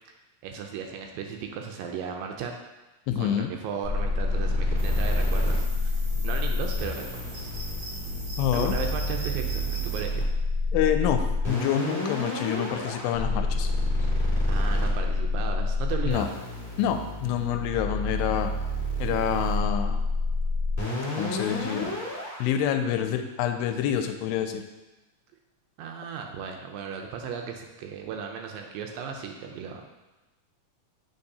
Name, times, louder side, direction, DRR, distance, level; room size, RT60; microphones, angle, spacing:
voice 1, 0.4-2.5 3.2-6.0 6.2-7.5 8.5-10.2 14.1-16.3 25.8-29.8, right 6 dB, 85° right, 3 dB, 2.2 m, -36 dB
voice 2, 3.1-3.5 8.4-8.7 10.7-13.7 16.0-16.3 16.8-18.5 19.0-20.0 21.1-22.0 22.4-24.6, left 9 dB, 90° left, 6 dB, 2.4 m, -27 dB
sound 1, 3.8-22.4, left 2 dB, 10° left, 0.8 m, -28 dB
sound 2, 4.8-10.0, left 1 dB, 50° right, 1.9 m, -38 dB
8.7 x 4.6 x 2.8 m, 1.1 s
omnidirectional pair, 4.1 m